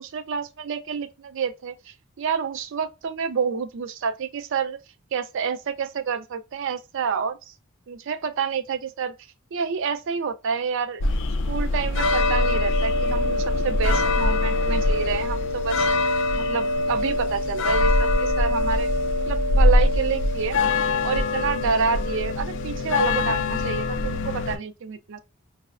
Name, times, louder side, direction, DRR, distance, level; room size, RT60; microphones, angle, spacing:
voice 1, 0.0-4.8 5.1-7.5 7.9-9.1 9.5-11.1 11.5-15.9 16.4-18.9 19.2-20.6 21.0-25.2, right 6 dB, 60° right, 0.4 m, -28 dB
sound 1, 11.0-24.6, left 2 dB, 55° left, 0.3 m, -23 dB
5.5 x 2.0 x 2.4 m
head